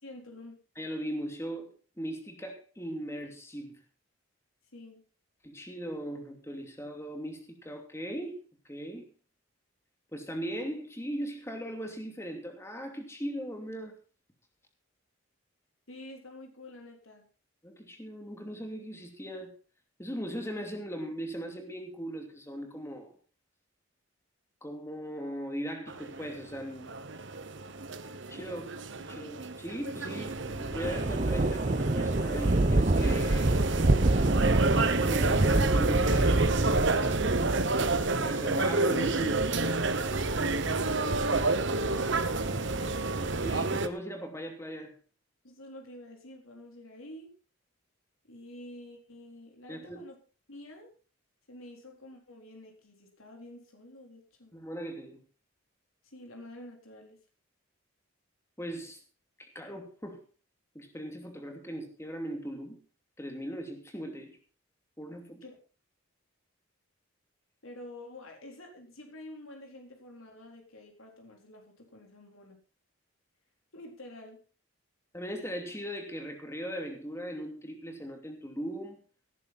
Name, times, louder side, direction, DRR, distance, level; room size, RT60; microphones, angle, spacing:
voice 1, 0.0-0.6 4.7-5.0 15.9-17.3 40.4-42.9 45.4-47.3 48.3-50.1 50.5-50.9 51.5-54.5 56.0-57.2 65.4-65.5 67.6-72.6 73.7-74.4, left 1 dB, 75° left, 2 dB, 3.9 m, -48 dB
voice 2, 0.8-1.7 2.0-3.8 5.4-9.1 10.1-13.9 17.6-19.5 20.0-23.1 24.6-26.9 28.3-33.5 34.9-36.6 38.1-39.5 43.4-44.9 49.7-50.1 54.5-55.2 58.6-59.0 59.4-60.2 60.7-62.8 63.2-64.4 65.0-65.4 75.1-79.0, equal, 15° left, 4 dB, 2.8 m, -39 dB
sound 1, 25.9-43.9, right 3 dB, 60° right, 1.2 m, -30 dB
sound 2, 30.8-43.6, right 2 dB, 35° right, 0.7 m, -28 dB
18.0 x 10.5 x 4.2 m, 0.35 s
head